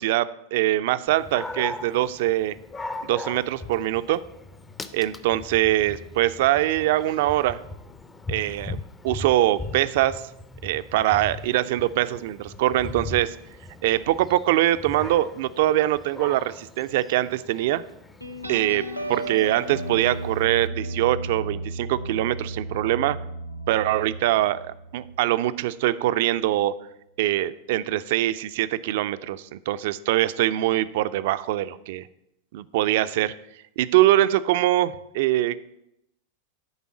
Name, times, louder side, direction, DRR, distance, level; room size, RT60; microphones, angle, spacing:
voice 1, 0.0-2.6 3.0-4.2 4.9-7.6 8.3-8.8 9.0-10.2 10.6-13.4 13.8-17.8 18.5-23.2 23.7-26.8 27.2-32.1 32.5-33.4 33.8-35.6, right 14 dB, 50° right, 14 dB, 0.4 m, -23 dB
Dog, 1.1-20.7, left 2 dB, 15° left, 0.5 m, -40 dB
sound 1, 18.2-25.4, right 2 dB, 90° right, 0.7 m, -34 dB
9.5 x 3.7 x 7.1 m, 0.82 s
figure-of-eight pair, 90°, 0 cm